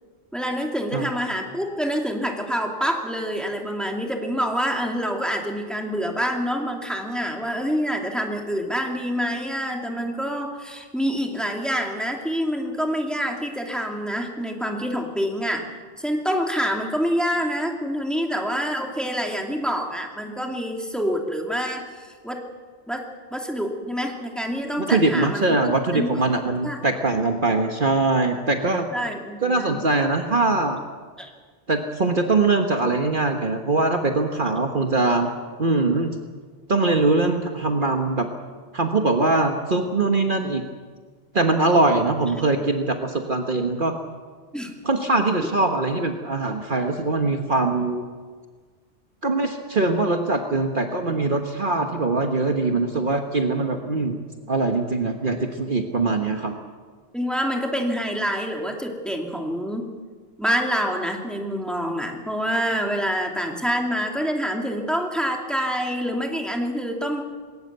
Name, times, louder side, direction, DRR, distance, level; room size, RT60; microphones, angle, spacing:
voice 1, 0.3-15.7 16.0-21.9 22.2-22.4 22.9-23.0 23.3-25.4 25.9-26.1 26.6-26.8 28.9-29.8 31.2-31.3 44.5-44.7 45.4-45.5 57.1-59.9 60.4-67.2, equal, ahead, 2 dB, 2.5 m, -26 dB
voice 2, 24.9-28.9 29.4-30.8 31.7-35.3 35.6-36.1 36.7-38.3 38.7-40.6 41.3-44.0 44.8-48.0 49.2-54.2 54.5-56.6, right 3 dB, 45° right, 4 dB, 1.4 m, -22 dB
20.5 x 18.0 x 8.1 m, 1.5 s
omnidirectional pair, 1.2 m